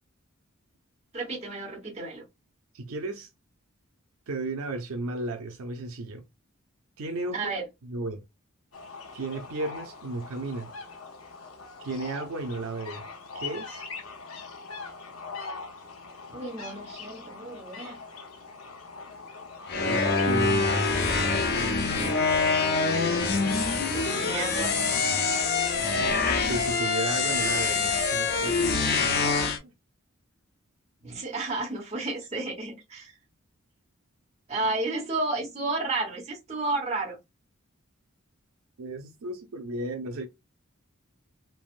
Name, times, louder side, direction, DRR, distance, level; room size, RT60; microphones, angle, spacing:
voice 1, 1.1-2.2 7.3-7.7 16.3-18.0 23.9-24.7 31.0-33.1 34.5-37.2, right 3 dB, 30° right, 1.2 m, -32 dB
voice 2, 2.7-3.3 4.3-6.2 7.0-7.5 7.8-8.2 9.1-10.7 11.8-13.1 13.3-13.8 19.8-21.1 25.8-28.7 29.0-29.7 38.8-40.3, right 2 dB, 80° right, 0.5 m, -34 dB
sound 1, 8.7-25.7, left 4 dB, 85° left, 0.8 m, -43 dB
sound 2, 19.7-29.6, left 4 dB, 45° left, 0.5 m, -25 dB
3.3 x 2.1 x 2.4 m
head